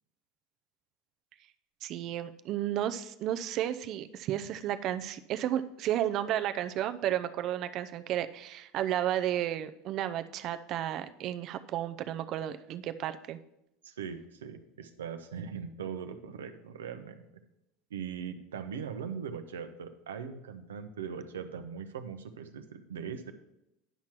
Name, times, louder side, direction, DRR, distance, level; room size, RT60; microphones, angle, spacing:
voice 1, 1.8-13.4, right 11 dB, 50° right, 10 dB, 0.6 m, -32 dB
voice 2, 13.8-17.3 17.9-23.3, right 7 dB, 85° right, 7 dB, 0.8 m, -40 dB
10.5 x 5.9 x 4.5 m, 0.84 s
hypercardioid pair, 85°, 0 cm